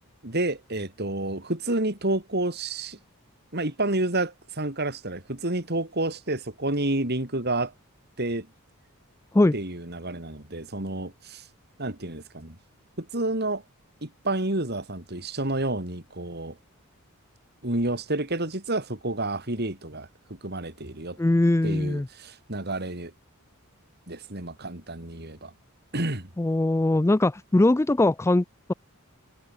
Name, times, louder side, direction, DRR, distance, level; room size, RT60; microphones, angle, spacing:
voice 1, 0.2-3.0 3.5-7.7 8.2-8.5 9.5-11.5 11.8-12.6 13.0-13.6 14.0-16.6 17.6-21.2 21.6-23.1 24.1-25.5 25.9-26.3, right 2 dB, 50° right, 3.8 m, -29 dB
voice 2, 21.2-22.1 26.4-28.7, left 2 dB, 10° left, 0.3 m, -21 dB
head